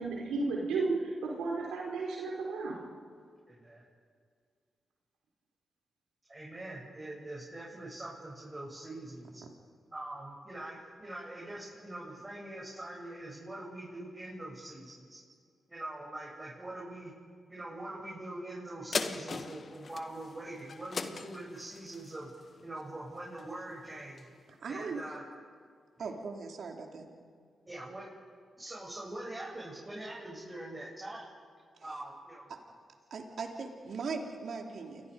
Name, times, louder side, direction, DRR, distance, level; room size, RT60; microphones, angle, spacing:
voice 1, 0.0-2.8, right 3 dB, 85° right, -2 dB, 4.2 m, -33 dB
voice 2, 3.5-3.8 6.3-9.4 9.9-15.2 15.7-17.1 17.5-22.3 22.6-24.3 24.6-25.2 27.7-28.0 28.6-31.2 31.8-32.5, right 1 dB, 25° right, -5 dB, 7.9 m, -43 dB
sound 1, 18.9-23.7 24.2-24.3, left 4 dB, 55° left, 1.6 m, -39 dB
voice 3, 24.5-25.0 26.0-27.1 31.8-31.9 32.5-32.6 33.1-35.1, right 4 dB, 70° right, 2 dB, 3.2 m, -39 dB
29.5 x 22.5 x 5.2 m, 2.1 s
supercardioid pair, 40°, 0 cm